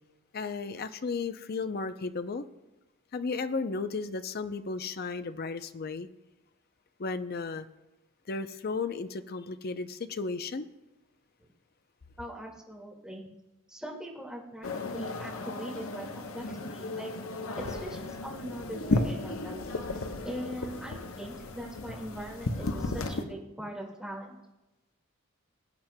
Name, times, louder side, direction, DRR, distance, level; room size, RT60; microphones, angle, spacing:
voice 1, 0.3-2.5 3.1-6.1 7.0-7.7 8.3-10.7, left 4 dB, 45° left, 11 dB, 0.5 m, -34 dB
voice 2, 12.2-13.3 13.7-17.1 17.6-19.7 20.2-24.4, equal, 5° right, -3 dB, 1.9 m, -41 dB
sound 1, 14.6-23.2, left 2 dB, 75° left, 0.9 m, -34 dB
20.5 x 8.8 x 2.2 m, 1.0 s
head